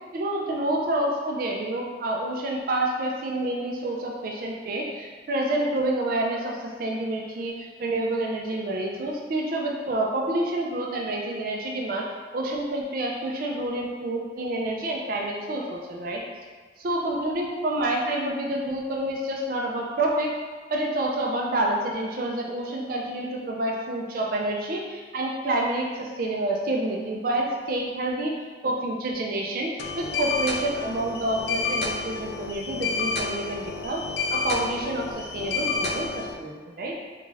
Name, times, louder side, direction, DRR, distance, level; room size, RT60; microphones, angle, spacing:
voice 1, 0.1-12.1 12.3-16.2 16.8-20.3 20.7-28.3 28.6-34.0 34.3-37.0, right 1 dB, 50° right, -1 dB, 0.4 m, -28 dB
sound 1, 29.8-36.3, left 4 dB, 70° left, 0.4 m, -30 dB
3.5 x 2.5 x 3.1 m, 1.5 s
head